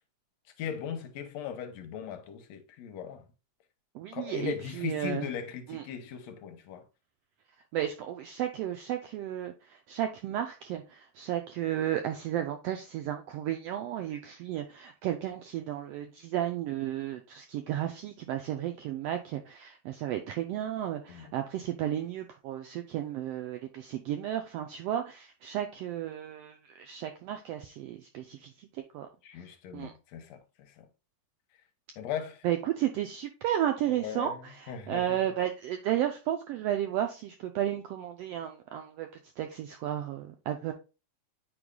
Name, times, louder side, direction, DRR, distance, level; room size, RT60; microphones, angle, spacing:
voice 1, 0.6-3.3 4.1-6.8 21.1-21.3 29.2-30.9 32.0-32.5 33.9-35.2, left 8 dB, 75° left, 1.9 m, -38 dB
voice 2, 3.9-5.3 5.7-5.8 7.7-29.1 29.7-29.9 32.4-39.1 39.4-40.7, right 11 dB, 90° right, 1.4 m, -33 dB
8.7 x 4.7 x 2.3 m
omnidirectional pair, 3.3 m